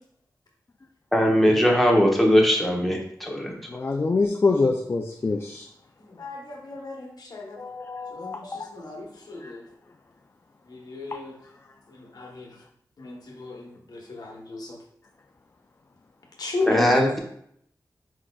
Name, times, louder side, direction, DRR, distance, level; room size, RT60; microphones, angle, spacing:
voice 1, 1.1-3.6 16.7-17.2, equal, ahead, -1 dB, 0.9 m, -20 dB
voice 2, 3.7-5.7 7.6-8.7 9.4-9.5, left 3 dB, 35° left, 3 dB, 0.4 m, -25 dB
voice 3, 6.2-7.6 8.1-9.6 10.9-11.3 12.1-12.5 13.0-14.8 16.4-16.9, left 3 dB, 70° left, 0 dB, 0.9 m, -34 dB
4.7 x 4.1 x 2.2 m, 0.69 s
wide cardioid pair, 85°, 7 cm